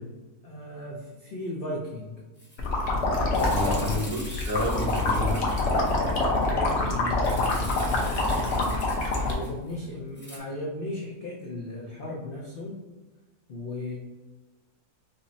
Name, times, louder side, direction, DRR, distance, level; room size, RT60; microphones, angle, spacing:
voice 1, 0.4-2.2 3.5-4.1 6.4-8.8 9.2-12.8 13.5-14.0, left 1 dB, 80° left, -3 dB, 0.5 m, -36 dB
Rattle (instrument), 2.4-2.6 2.8-2.9 3.3-6.2 7.2-9.8 10.1-10.4, equal, 10° left, 0.6 m, -44 dB
sound 1, 2.6-9.3, left 2 dB, 55° left, 0.8 m, -25 dB
voice 2, 3.1-5.5, left 1 dB, 80° right, -4 dB, 1.5 m, -31 dB
5.4 x 2.0 x 2.6 m, 1.2 s
omnidirectional pair, 1.6 m